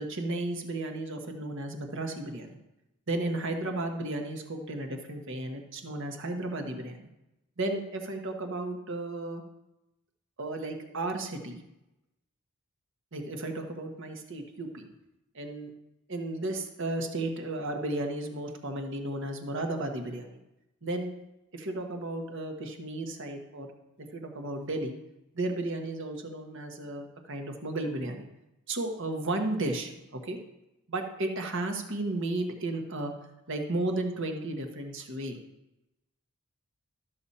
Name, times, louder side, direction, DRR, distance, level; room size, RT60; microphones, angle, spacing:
voice 1, 0.0-2.6 3.1-7.1 7.6-9.4 10.4-11.6 13.1-14.9 15.3-15.7 16.1-20.4 20.8-21.1 21.5-23.7 24.0-24.9 25.3-28.3 28.7-30.4 30.9-33.1 33.5-35.4, right 2 dB, 60° right, 4 dB, 1.4 m, -34 dB
12.5 x 7.0 x 4.3 m, 0.93 s
head